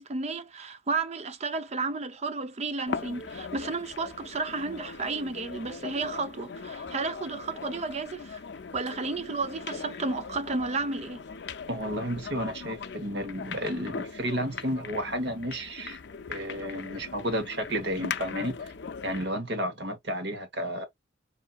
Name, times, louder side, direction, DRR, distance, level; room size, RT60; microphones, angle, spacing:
voice 1, 0.0-8.4 8.7-11.2, right 3 dB, 35° right, 0.5 m, -32 dB
sound 1, 2.9-19.4, left 5 dB, 65° left, 0.6 m, -40 dB
voice 2, 11.7-16.0 16.3-18.7 19.0-20.8, equal, 60° right, 1.2 m, -32 dB
5.6 x 2.7 x 2.3 m
head